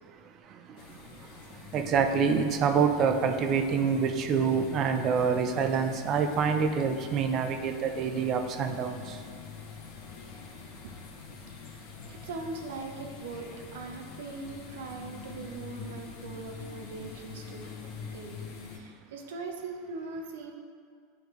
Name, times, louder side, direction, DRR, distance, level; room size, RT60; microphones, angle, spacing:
sound 1, 0.8-18.8, left 5 dB, 65° left, 0.8 m, -45 dB
voice 1, 1.7-9.0, right 6 dB, 45° right, 6 dB, 0.5 m, -26 dB
voice 2, 11.5-17.7 18.1-20.5, right 3 dB, 75° right, 2 dB, 0.8 m, -41 dB
9.4 x 3.2 x 3.1 m, 2.1 s
hypercardioid pair, 100°, 0 cm